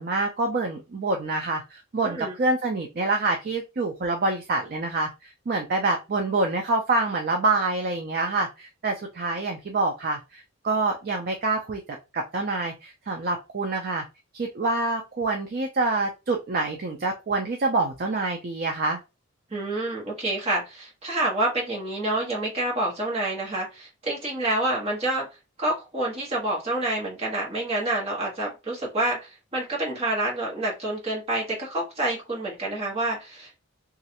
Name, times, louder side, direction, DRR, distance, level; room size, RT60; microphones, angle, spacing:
voice 1, 0.0-14.0 14.3-19.0, right 3 dB, 45° right, 3 dB, 0.4 m, -26 dB
voice 2, 2.0-2.3 19.5-25.3 25.6-33.6, right 2 dB, 30° right, -2 dB, 1.1 m, -28 dB
3.1 x 2.4 x 2.8 m, 0.26 s
head